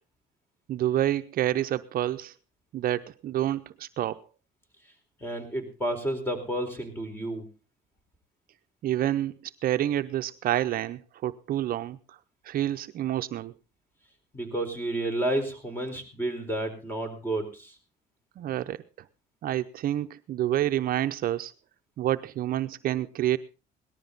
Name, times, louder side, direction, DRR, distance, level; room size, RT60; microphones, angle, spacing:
voice 1, 0.7-2.3 2.7-4.2 8.8-12.2 12.4-13.5 18.4-18.8 19.4-21.5 22.0-23.4, right 12 dB, 60° right, 10 dB, 0.7 m, -28 dB
voice 2, 5.2-7.5 14.3-17.8, right 1 dB, 10° left, 6 dB, 4.3 m, -31 dB
18.5 x 12.5 x 3.9 m, 0.32 s
cardioid pair, 110°, 17 cm